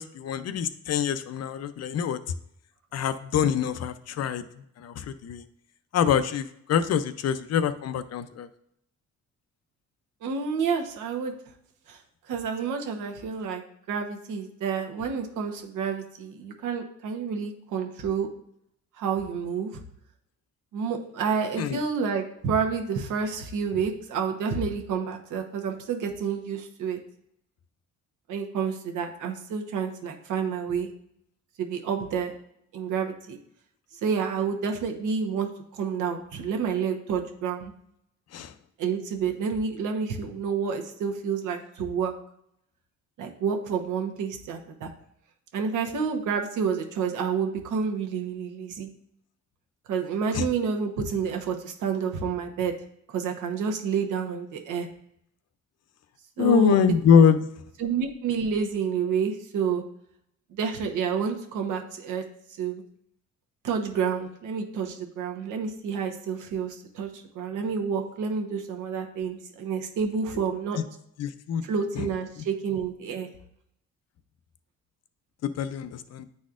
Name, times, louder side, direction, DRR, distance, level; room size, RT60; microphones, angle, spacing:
voice 1, 0.0-2.2 2.9-4.4 4.8-5.4 5.9-8.5 21.6-21.8 38.3-38.5 50.3-50.4 56.4-57.5 71.2-71.6 72.0-72.1 75.6-76.3, left 7 dB, 55° left, 12 dB, 0.5 m, -24 dB
voice 2, 10.2-11.3 11.9-12.0 12.3-13.6 13.9-18.3 19.0-19.7 20.7-27.0 28.3-30.9 31.6-32.3 32.7-33.4 34.0-37.7 38.8-42.1 43.2-44.9 45.5-48.9 49.9-52.7 53.1-54.9 56.4-57.0 57.8-59.8 60.5-62.2 62.6-62.8 63.6-70.8 71.6-73.3, right 6 dB, 80° right, 3 dB, 1.0 m, -29 dB
9.3 x 4.2 x 2.5 m, 0.74 s
cardioid pair, 90°, 30 cm